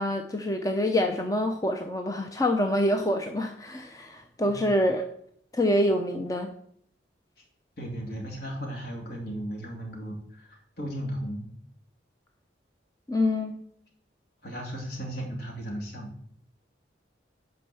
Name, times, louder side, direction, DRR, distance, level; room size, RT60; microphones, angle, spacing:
voice 1, 0.0-5.1 5.5-6.5 13.1-13.5, left 1 dB, 20° left, 4 dB, 0.6 m, -26 dB
voice 2, 4.4-4.7 7.8-11.5 14.4-16.1, equal, 60° left, 1 dB, 2.7 m, -36 dB
8.9 x 5.5 x 6.8 m, 0.65 s
head